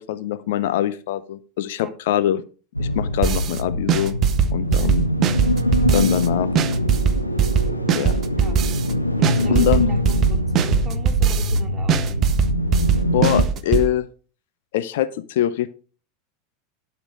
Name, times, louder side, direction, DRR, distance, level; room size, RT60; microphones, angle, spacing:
voice 1, 0.0-2.4 2.8-4.2 4.5-5.1 5.9-6.5 7.9-8.2 9.5-9.9 13.1-14.1 14.7-15.7, left 12 dB, 60° left, 15 dB, 0.6 m, -23 dB
sound 1, 2.7-13.5, left 1 dB, 85° left, 1.0 m, -23 dB
sound 2, 3.2-3.6 3.9-6.3 6.6-8.9 9.2-11.6 11.9-13.9, right 8 dB, 35° right, 0.8 m, -20 dB
voice 2, 7.4-7.9 8.4-8.6 9.2-9.8 10.1-12.2, right 5 dB, 20° right, 4 dB, 2.2 m, -38 dB
12.0 x 5.9 x 5.0 m, 0.38 s
figure-of-eight pair, 80°, 0 cm